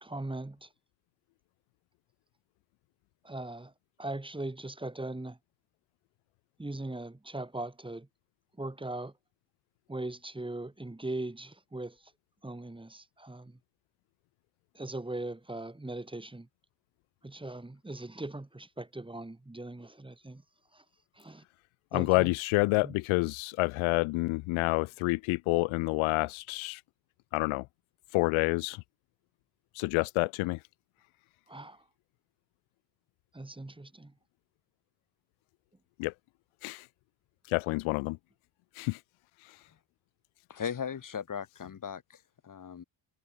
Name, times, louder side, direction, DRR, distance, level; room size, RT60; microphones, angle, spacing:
voice 1, 0.0-0.7 3.2-3.7 4.0-5.4 6.6-8.1 8.6-9.1 9.9-12.0 12.4-13.6 14.7-16.5 17.2-20.4 20.7-20.8 21.2-21.4 21.9-22.3 22.8-23.0 31.5-31.8 33.3-34.1, right 2 dB, 10° right, 3.2 m, -39 dB
voice 2, 21.9-26.8 27.3-27.7 28.1-28.8 29.7-30.6 36.0-36.1 36.6-36.9 37.5-38.2 38.8-39.0, left 24 dB, 85° left, 0.7 m, -28 dB
voice 3, 40.5-42.2 42.4-42.8, left 7 dB, 40° left, 3.7 m, -37 dB
cardioid pair, 90°, 47 cm